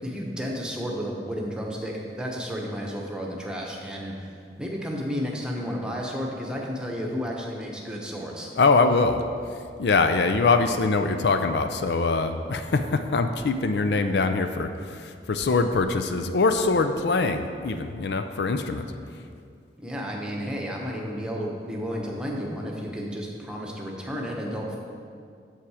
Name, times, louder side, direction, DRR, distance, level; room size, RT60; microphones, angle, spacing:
voice 1, 0.0-8.5 19.8-24.8, equal, 5° right, -2 dB, 1.0 m, -32 dB
voice 2, 8.6-9.2 9.8-18.9, left 3 dB, 70° left, 8 dB, 0.5 m, -23 dB
8.5 x 7.3 x 4.9 m, 2.3 s
head